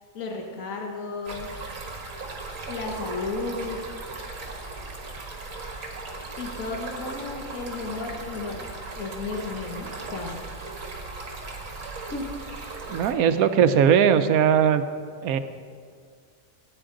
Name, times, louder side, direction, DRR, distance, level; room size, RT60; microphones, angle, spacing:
voice 1, 0.1-1.5 2.7-3.8 6.4-8.6 9.0-10.4 12.1-12.3, left 3 dB, 75° left, 1 dB, 1.5 m, -33 dB
Stream, 1.2-13.1, right 3 dB, 70° right, 1.8 m, -37 dB
voice 2, 12.9-14.8 15.2-15.4, right 8 dB, 90° right, 10 dB, 1.1 m, -19 dB
17.5 x 9.2 x 3.8 m, 2.1 s
omnidirectional pair, 1.5 m